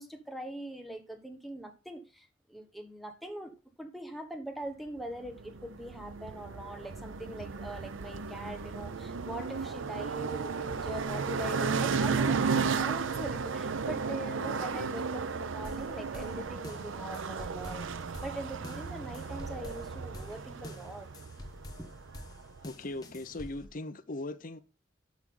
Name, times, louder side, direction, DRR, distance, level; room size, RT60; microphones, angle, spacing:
voice 1, 0.0-3.5 3.8-17.9 18.2-21.1 21.8-21.9, right 1 dB, ahead, 1.2 m, -42 dB
sound 1, 5.2-22.7, right 5 dB, 85° right, 0.6 m, -34 dB
sound 2, 15.6-23.7, left 1 dB, 20° left, 1.1 m, -48 dB
voice 2, 22.6-24.6, left 2 dB, 45° left, 0.7 m, -39 dB
11.0 x 6.0 x 3.8 m
head